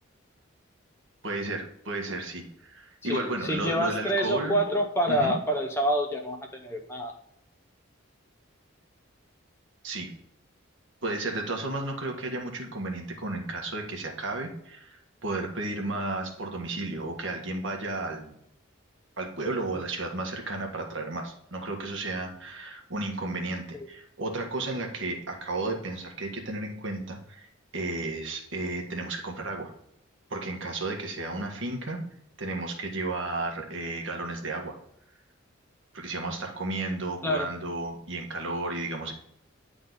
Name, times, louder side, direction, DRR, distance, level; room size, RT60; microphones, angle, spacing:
voice 1, 1.2-4.6 5.1-5.3 9.8-10.1 11.0-18.3 19.2-27.5 27.7-29.7 30.3-32.0 32.4-34.7 35.9-39.1, right 2 dB, 65° right, 2 dB, 1.5 m, -33 dB
voice 2, 3.0-7.1 23.7-23.9 37.2-37.5, equal, 10° left, 2 dB, 0.7 m, -27 dB
9.2 x 3.9 x 4.0 m, 0.75 s
head